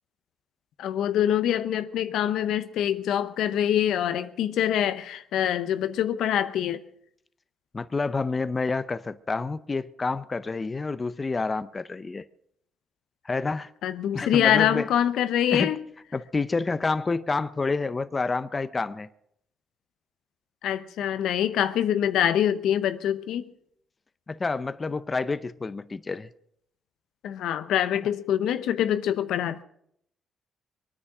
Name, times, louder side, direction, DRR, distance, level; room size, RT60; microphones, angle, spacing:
voice 1, 0.8-6.8 13.8-15.8 20.6-23.5 27.2-29.6, left 10 dB, 80° left, 0.8 m, -25 dB
voice 2, 7.7-12.2 13.2-13.7 14.1-14.9 15.5-15.7 16.1-19.1 24.3-26.3, left 3 dB, 30° left, 0.6 m, -28 dB
23.0 x 9.8 x 6.0 m
cardioid pair, 90°, 0 cm